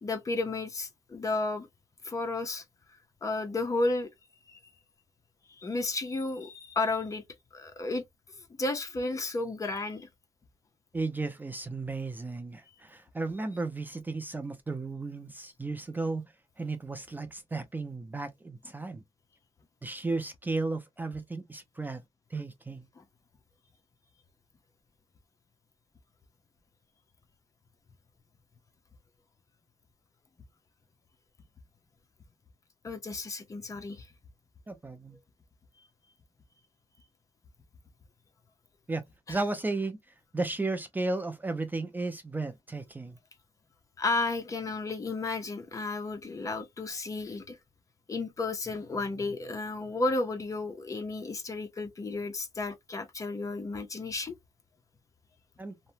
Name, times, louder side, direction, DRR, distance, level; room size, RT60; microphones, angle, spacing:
voice 1, 0.0-1.7 2.0-2.6 3.2-4.1 4.5-4.6 5.6-7.2 7.5-8.0 8.6-10.1 23.0-23.1 32.8-34.1 39.3-39.4 44.0-47.6 48.1-54.4, left 3 dB, 30° left, 0.6 m, -32 dB
voice 2, 10.9-16.2 16.6-19.0 19.8-22.0 22.3-22.8 34.7-35.2 38.9-39.0 39.3-40.0 40.3-43.2 55.6-55.7, right 3 dB, 15° right, 0.4 m, -34 dB
2.8 x 2.1 x 2.7 m
cardioid pair, 125°, 11 cm